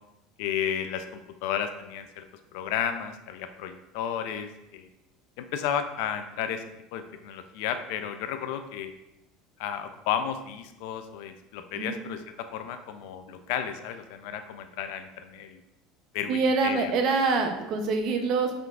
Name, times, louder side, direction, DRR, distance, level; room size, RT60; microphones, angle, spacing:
voice 1, 0.4-2.2 2.5-4.9 5.4-6.6 6.9-8.9 9.6-15.6 16.1-16.9, left 9 dB, 70° left, 8 dB, 0.4 m, -33 dB
voice 2, 11.7-12.1 16.3-18.7, right 4 dB, 50° right, 4 dB, 0.6 m, -25 dB
5.6 x 3.8 x 2.4 m, 0.91 s
cardioid pair, 150°, 0 cm